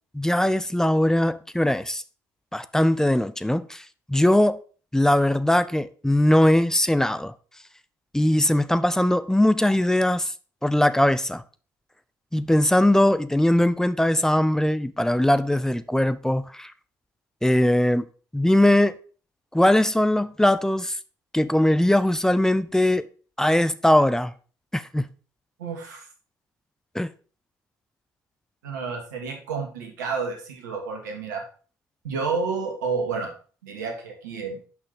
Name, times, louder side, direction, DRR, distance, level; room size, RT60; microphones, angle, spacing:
voice 1, 0.1-2.0 2.5-4.6 4.9-7.3 8.1-10.3 10.6-11.4 12.3-16.7 17.4-18.0 18.3-19.0 19.5-21.0 21.3-23.1 23.4-24.3 24.7-25.1 26.9-27.1, left 1 dB, 5° left, 0.6 m, -20 dB
voice 2, 25.6-26.1 28.6-31.4 32.0-33.3 33.6-34.6, right 4 dB, 80° right, 1.7 m, -30 dB
6.2 x 5.6 x 5.2 m
hypercardioid pair, 50°, 10 cm